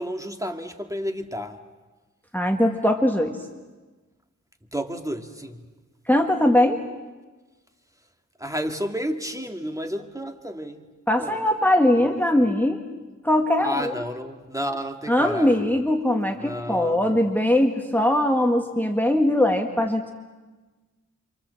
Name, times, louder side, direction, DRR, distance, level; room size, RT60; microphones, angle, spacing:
voice 1, 0.0-1.6 4.7-5.6 8.4-10.8 11.2-11.4 12.1-12.2 13.6-15.8 16.4-17.2, equal, 10° right, 4 dB, 2.0 m, -31 dB
voice 2, 2.3-3.4 6.1-6.8 11.1-12.8 13.2-13.9 15.1-20.1, left 1 dB, 5° left, 3 dB, 1.6 m, -21 dB
28.0 x 26.5 x 7.7 m, 1.3 s
wide cardioid pair, 75°, 31 cm